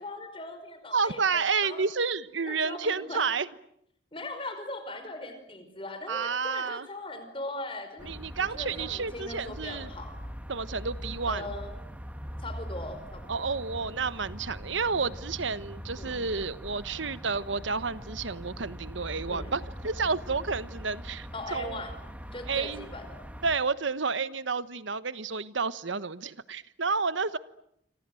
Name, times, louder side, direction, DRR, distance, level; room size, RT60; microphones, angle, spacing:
voice 1, 0.0-1.8 2.4-3.2 4.1-8.1 8.4-10.1 11.3-11.7 12.4-13.5 16.0-16.3 19.3-19.5 21.3-21.9 22.3-23.3, left 2 dB, 30° left, 8 dB, 5.0 m, -40 dB
voice 2, 0.9-3.5 6.1-6.9 8.0-9.9 10.5-11.5 13.3-21.8 22.5-22.9 23.4-27.4, right 4 dB, 80° right, 15 dB, 1.2 m, -30 dB
sound 1, 8.0-23.6, equal, 10° right, 2.2 m, -42 dB
28.5 x 26.5 x 7.8 m, 0.73 s
head